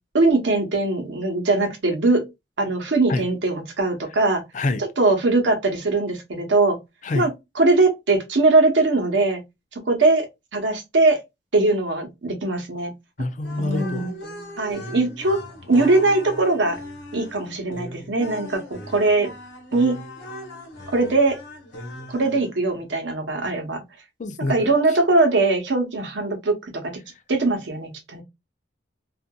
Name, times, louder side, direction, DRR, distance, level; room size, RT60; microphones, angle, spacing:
voice 1, 0.1-2.2 2.6-4.4 4.8-6.8 7.1-9.4 9.8-10.3 10.5-11.2 11.5-12.9 13.6-14.1 14.6-15.4 15.7-16.8 17.1-19.3 19.7-20.0 20.9-21.4 22.1-23.8 24.5-26.9 27.3-28.2, right 3 dB, 80° right, 0.9 m, -21 dB
voice 2, 13.2-14.1 24.2-24.7, left 2 dB, 40° left, 0.4 m, -26 dB
sound 1, 13.4-22.6, left 1 dB, 80° left, 1.0 m, -38 dB
2.7 x 2.5 x 2.2 m
head